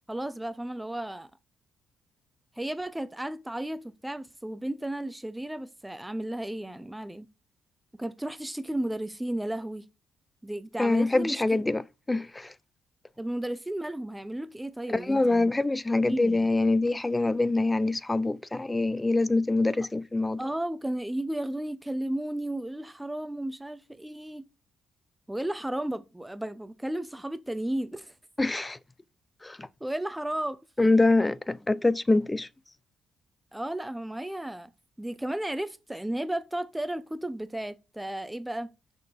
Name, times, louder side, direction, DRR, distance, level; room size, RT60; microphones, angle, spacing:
voice 1, 0.1-1.3 2.6-7.3 8.0-9.8 10.4-11.4 13.2-15.5 16.1-16.5 20.4-24.4 25.3-28.1 29.8-30.6 33.5-34.7 35.0-38.7, right 1 dB, 10° right, 0.8 m, -33 dB
voice 2, 10.8-11.8 12.1-12.5 14.9-20.4 28.4-28.8 29.4-29.7 30.8-32.5, left 2 dB, 20° left, 0.6 m, -25 dB
6.6 x 6.2 x 5.3 m
hypercardioid pair, 45°, 0 cm